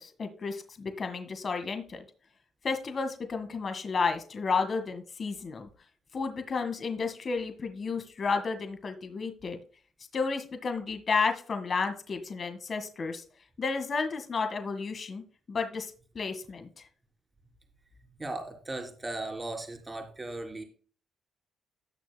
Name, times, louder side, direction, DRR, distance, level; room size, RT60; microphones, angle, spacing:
voice 1, 0.0-2.1 2.6-5.7 6.1-9.6 10.1-13.2 13.6-15.2 15.5-16.9, left 4 dB, 45° left, 7 dB, 1.9 m, -32 dB
voice 2, 18.2-20.6, right 2 dB, 20° right, 3 dB, 3.6 m, -37 dB
18.0 x 6.6 x 2.3 m, 0.41 s
cardioid pair, 90°, 0 cm